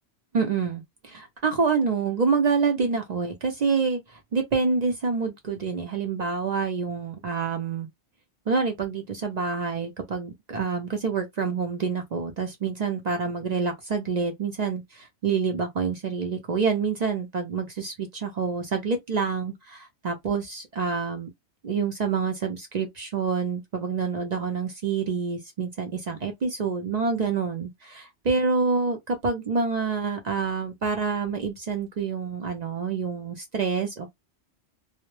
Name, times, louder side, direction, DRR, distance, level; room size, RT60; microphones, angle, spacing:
voice 1, 0.3-7.9 8.5-21.3 21.6-34.1, right 5 dB, 55° right, 0.5 m, -27 dB
2.1 x 2.0 x 3.0 m
omnidirectional pair, 1.2 m